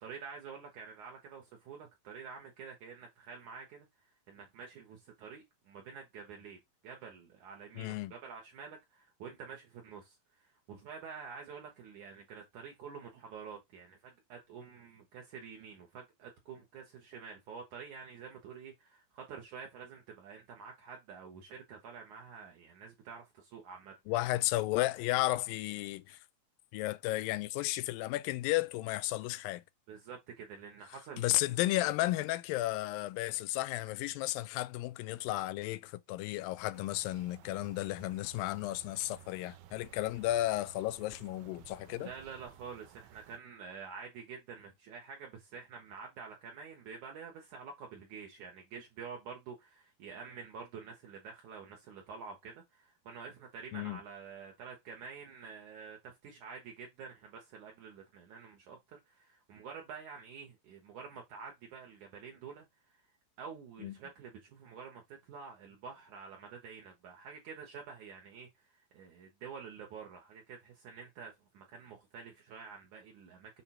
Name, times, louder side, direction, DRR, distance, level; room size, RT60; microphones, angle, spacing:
voice 1, 0.0-3.9 4.3-24.0 29.9-31.4 41.9-62.7 63.4-68.5 68.9-73.6, right 6 dB, 65° right, 2.3 m, -48 dB
voice 2, 7.8-8.1 24.1-26.2 26.7-29.6 31.2-42.1 53.7-54.0 63.8-63.9, left 17 dB, 80° left, 2.2 m, -33 dB
sound 1, 36.7-43.4, right 11 dB, 85° right, 2.5 m, -56 dB
6.9 x 3.5 x 4.3 m
omnidirectional pair, 4.3 m